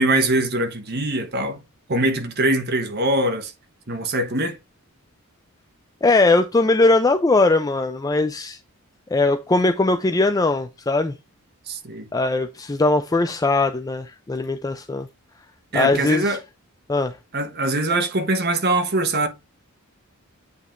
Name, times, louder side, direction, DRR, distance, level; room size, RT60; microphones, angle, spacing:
voice 1, 0.0-1.6 1.9-3.5 3.9-4.6 11.7-12.1 15.7-16.4 17.3-19.3, right 2 dB, 45° right, 1.2 m, -22 dB
voice 2, 6.0-8.6 9.1-11.1 12.1-15.1 15.7-16.4 16.9-17.2, left 2 dB, 15° left, 0.4 m, -20 dB
8.4 x 3.4 x 3.6 m
head